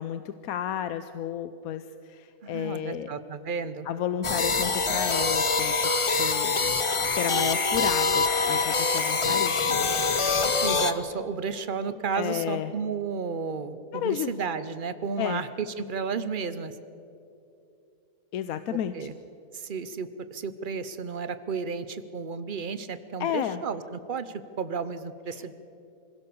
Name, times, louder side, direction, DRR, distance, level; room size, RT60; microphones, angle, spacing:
voice 1, 0.0-3.1 3.8-9.9 12.1-12.7 13.9-14.3 15.2-15.4 18.3-19.1 23.2-23.6 25.3-25.5, left 10 dB, 70° left, 11 dB, 1.0 m, -32 dB
voice 2, 2.4-3.9 10.4-16.7 18.9-19.1 19.5-25.5, right 5 dB, 40° right, 12 dB, 0.8 m, -33 dB
sound 1, 4.2-10.9, left 4 dB, 30° left, 0.5 m, -25 dB
25.5 x 16.0 x 7.0 m, 2.7 s
omnidirectional pair, 1.7 m